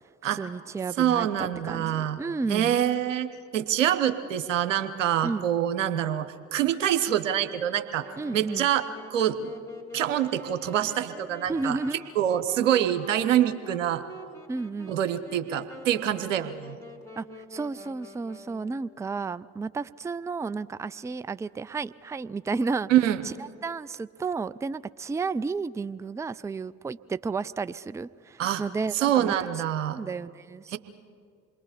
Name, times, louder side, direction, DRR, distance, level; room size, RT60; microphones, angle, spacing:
voice 1, 0.3-2.8 5.2-5.5 8.2-8.7 11.5-12.0 14.5-15.0 17.2-22.9 23.2-23.3 23.6-29.3 30.0-30.8, right 4 dB, 10° right, 16 dB, 0.4 m, -32 dB
voice 2, 1.0-2.2 2.5-8.1 8.3-8.8 9.1-9.5 9.9-11.8 12.2-14.0 14.9-16.8 22.9-23.2 28.4-28.6 28.9-30.0 30.7-30.8, right 11 dB, 90° right, 11 dB, 0.9 m, -25 dB
Wind instrument woodwind instrument, 8.0-18.9, equal, 10° left, 3.4 m, -46 dB
27.5 x 21.5 x 5.1 m, 2.2 s
hypercardioid pair, 55°, 37 cm